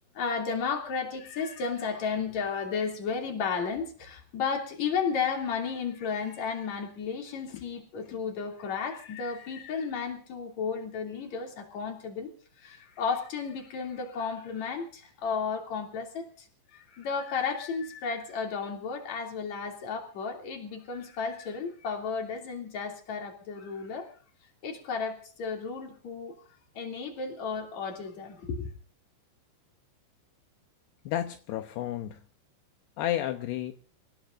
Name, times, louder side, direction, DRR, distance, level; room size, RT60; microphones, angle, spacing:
voice 1, 0.2-12.3 12.6-16.5 16.7-24.1 24.6-26.3 26.8-28.7, left 5 dB, 40° left, 2 dB, 3.6 m, -33 dB
voice 2, 31.1-32.2 33.0-33.7, left 12 dB, 80° left, 6 dB, 2.5 m, -32 dB
27.0 x 18.0 x 2.6 m, 0.41 s
omnidirectional pair, 5.9 m